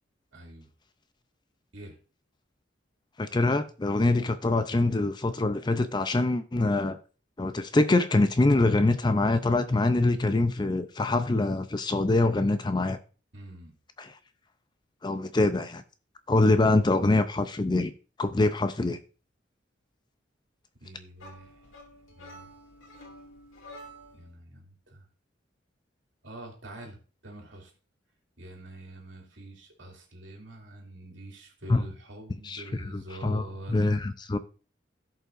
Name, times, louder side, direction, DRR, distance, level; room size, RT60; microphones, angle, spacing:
voice 1, 0.3-0.7 1.7-2.0 13.3-13.7 16.4-16.5 20.8-21.7 22.1-22.5 24.1-25.1 26.2-27.7 28.4-33.9, right 1 dB, 70° right, 2.6 m, -45 dB
voice 2, 3.2-7.0 7.4-13.0 14.0-14.1 15.0-15.8 16.3-17.9 18.2-19.0 31.7-31.8 32.5-32.6 33.2-33.4 33.7-34.4, left 2 dB, 25° left, 0.4 m, -24 dB
sound 1, 21.2-24.3, equal, 90° left, 2.2 m, -49 dB
16.5 x 5.5 x 2.5 m
head